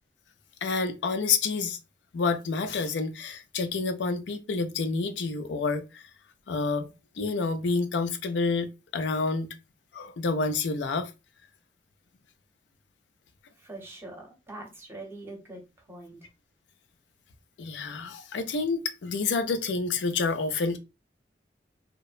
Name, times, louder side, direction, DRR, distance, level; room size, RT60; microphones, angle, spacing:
voice 1, 0.6-1.8 2.1-6.0 6.5-6.9 7.2-8.7 8.9-9.5 9.9-11.1 17.6-20.8, left 4 dB, 85° left, 0.4 m, -28 dB
voice 2, 13.6-16.3, right 2 dB, 15° right, 0.7 m, -43 dB
2.8 x 2.1 x 2.4 m
head